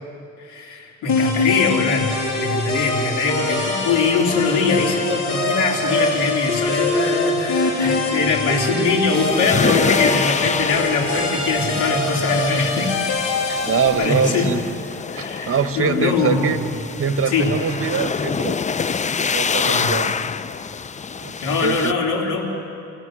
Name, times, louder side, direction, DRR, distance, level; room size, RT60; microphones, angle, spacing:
voice 1, 0.4-12.9 13.5-13.6 14.0-14.5 15.1-16.7 17.3-17.5 19.6-19.9 21.4-22.5, left 4 dB, 90° left, 0 dB, 3.2 m, -22 dB
sound 1, 1.1-13.9, left 2 dB, 65° left, 6.4 m, -23 dB
sound 2, 9.1-21.9, left 5 dB, 25° left, 0.5 m, -26 dB
voice 2, 13.7-14.6 15.2-16.6 17.0-18.6 19.2-20.2 21.2-21.3 21.6-21.9, right 6 dB, 45° right, 9 dB, 1.4 m, -23 dB
28.0 x 17.0 x 6.3 m, 2.5 s
cardioid pair, 90°, 30 cm